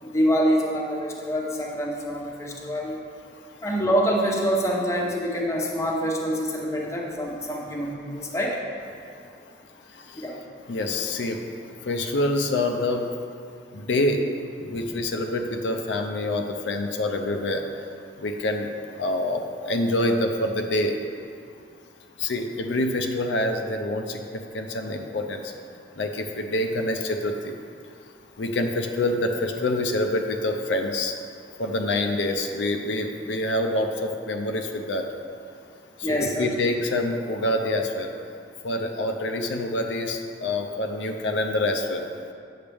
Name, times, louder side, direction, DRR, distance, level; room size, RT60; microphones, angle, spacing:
voice 1, 0.0-3.0 3.6-8.6 10.2-10.3 36.0-36.5, equal, 15° left, -2 dB, 0.8 m, -25 dB
voice 2, 9.9-10.3 10.7-11.5 11.8-13.1 13.7-14.2 14.6-17.6 18.2-18.7 19.0-21.0 22.2-25.5 26.0-27.5 28.4-31.1 31.6-35.1 36.0-38.1 38.6-42.0, left 1 dB, 90° left, 4 dB, 0.6 m, -26 dB
8.6 x 6.4 x 3.4 m, 2.4 s
head